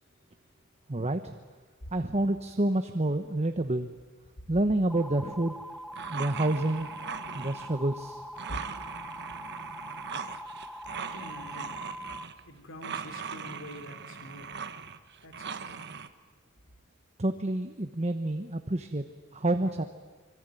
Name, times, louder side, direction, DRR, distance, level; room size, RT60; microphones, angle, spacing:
voice 1, 0.9-1.3 1.9-3.9 4.5-5.5 6.1-6.9 7.3-8.2 17.2-19.0 19.3-19.8, right 1 dB, 30° right, 8 dB, 1.1 m, -28 dB
sound 1, 4.9-12.2, equal, ahead, 0.9 m, -43 dB
sound 2, 5.9-7.7 8.4-12.4 12.8-16.1, right 6 dB, 55° right, 1.3 m, -40 dB
voice 2, 10.6-11.7 12.4-14.5 15.2-15.8, equal, 65° left, 6 dB, 3.3 m, -45 dB
25.5 x 25.5 x 9.2 m, 1.3 s
head